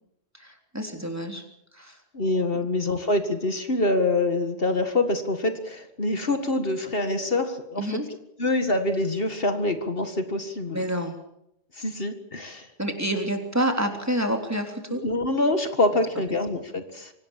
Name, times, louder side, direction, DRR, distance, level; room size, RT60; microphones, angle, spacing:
voice 1, 0.3-1.4 1.7-2.0 7.8-8.0 10.7-11.2 12.8-15.0, equal, 15° right, 4 dB, 3.5 m, -28 dB
voice 2, 2.1-8.0 8.4-10.8 11.7-12.7 14.9-17.1, left 2 dB, 60° left, 8 dB, 2.0 m, -25 dB
25.0 x 18.5 x 7.4 m, 0.79 s
omnidirectional pair, 1.1 m